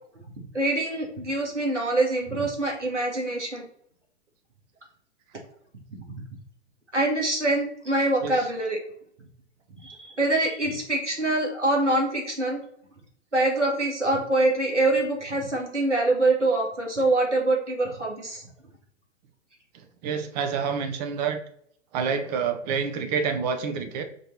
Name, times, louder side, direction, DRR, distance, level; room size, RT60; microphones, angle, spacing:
voice 1, 0.5-3.6 6.9-8.8 9.8-12.6 13.3-18.4, right 2 dB, 85° right, 0 dB, 2.1 m, -24 dB
voice 2, 19.7-21.4 21.9-24.0, right 6 dB, 35° right, 7 dB, 1.0 m, -28 dB
5.2 x 3.3 x 5.5 m, 0.66 s
figure-of-eight pair, 110°, 35 cm